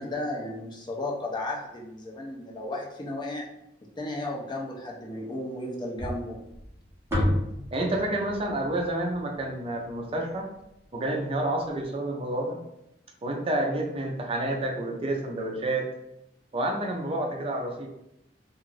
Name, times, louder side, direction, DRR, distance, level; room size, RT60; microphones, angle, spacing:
voice 1, 0.0-3.5 4.0-6.4, left 1 dB, 25° left, -2 dB, 0.5 m, -34 dB
sound 1, 6.0-10.3, left 1 dB, 15° right, 0.9 m, -32 dB
voice 2, 7.7-10.5 10.9-12.6 13.2-15.9 16.5-17.9, right 1 dB, 30° right, 1 dB, 0.5 m, -29 dB
2.4 x 2.4 x 3.2 m, 0.83 s
head